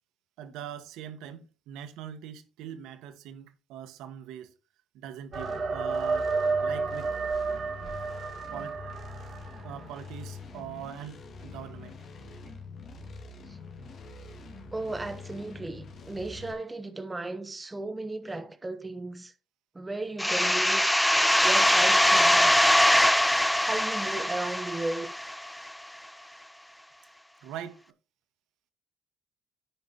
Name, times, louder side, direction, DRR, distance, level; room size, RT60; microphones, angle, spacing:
voice 1, 0.4-4.5 4.9-6.4 6.6-7.2 8.5-8.8 9.6-12.0 27.4-27.8, right 10 dB, 85° right, 1.3 m, -42 dB
sound 1, 5.3-16.5, left 3 dB, 40° left, 2.1 m, -45 dB
sound 2, 5.3-10.2, right 4 dB, 35° right, 1.8 m, -31 dB
voice 2, 14.7-19.3 19.7-20.8 21.4-22.6 23.5-25.1, right 2 dB, 10° right, 1.0 m, -35 dB
sound 3, 20.2-25.7, left 1 dB, 5° left, 0.5 m, -22 dB
15.0 x 5.6 x 2.9 m
cardioid pair, 160°, 0 cm